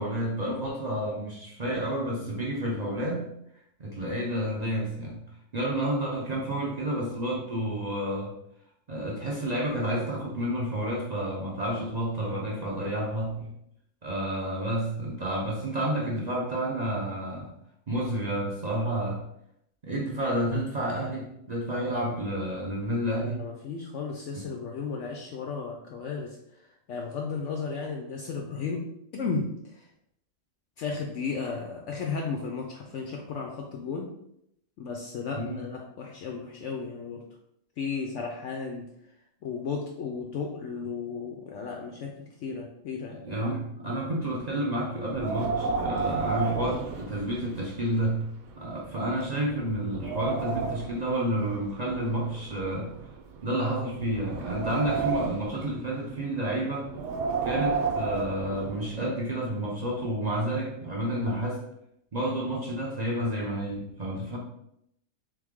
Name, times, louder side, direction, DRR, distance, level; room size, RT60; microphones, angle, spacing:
voice 1, 0.0-3.3 3.8-5.2 5.5-8.3 8.9-13.5 14.0-17.5 17.9-19.2 19.8-23.4 24.3-24.4 35.3-35.6 43.1-48.3 48.6-53.0 53.4-56.9 57.4-61.6 62.1-64.4, right 1 dB, 45° right, -3 dB, 0.5 m, -30 dB
voice 2, 23.2-28.8 29.1-29.9 30.8-34.1 34.8-37.2 37.8-38.8 39.4-43.2, left 5 dB, 70° left, 1 dB, 0.8 m, -34 dB
Wind, 45.0-47.7 48.0-48.1 48.8-48.9 49.4-51.0 51.9-53.4 54.0-55.6 56.8-59.0, right 4 dB, 70° right, 1.0 m, -31 dB
3.6 x 3.2 x 3.5 m, 0.75 s
omnidirectional pair, 1.6 m